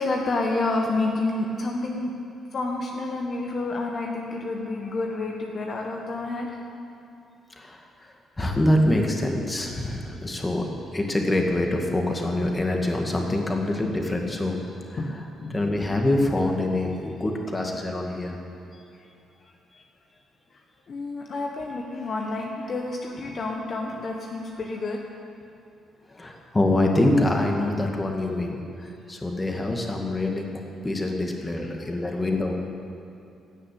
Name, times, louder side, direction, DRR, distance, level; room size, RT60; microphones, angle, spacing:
voice 1, 0.0-2.1 2.5-6.6 15.0-15.6 20.9-25.0 31.6-31.7, left 2 dB, 50° left, 1 dB, 1.4 m, -29 dB
voice 2, 8.4-10.6 10.9-14.6 14.9-15.2 15.5-18.4 26.1-30.5 30.8-32.5, left 1 dB, 20° left, 1 dB, 2.0 m, -25 dB
16.5 x 6.7 x 8.5 m, 2.6 s
cardioid pair, 90°, 0 cm